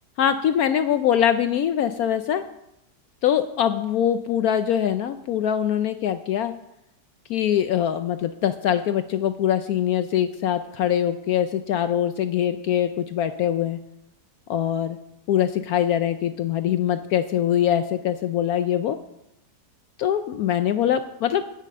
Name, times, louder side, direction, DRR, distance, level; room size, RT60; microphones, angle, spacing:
voice 1, 0.2-2.4 3.2-6.5 7.3-13.8 14.5-15.0 15.3-19.0 20.0-21.4, left 10 dB, 70° left, 10 dB, 0.9 m, -23 dB
9.9 x 5.7 x 8.4 m, 0.84 s
omnidirectional pair, 1.8 m